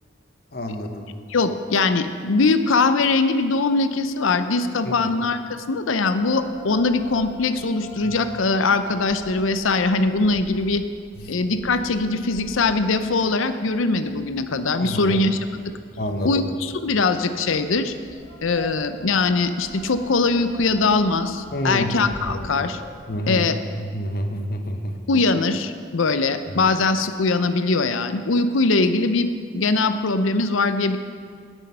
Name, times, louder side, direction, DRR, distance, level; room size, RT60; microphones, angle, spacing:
voice 1, 0.5-1.1 4.8-4.9 8.0-8.1 11.2-11.3 14.8-15.2 16.0-16.4 21.5-21.9 22.3-22.5 23.1-23.4 23.8-25.0, equal, 50° left, 5 dB, 1.0 m, -28 dB
voice 2, 1.3-5.4 5.7-10.8 11.3-15.4 16.2-17.9 18.4-22.8 23.3-23.6 25.1-29.3 29.5-31.0, left 3 dB, 80° left, 10 dB, 0.6 m, -21 dB
sound 1, 6.2-23.3, equal, 15° left, 1.2 m, -44 dB
16.5 x 6.3 x 5.5 m, 2.1 s
head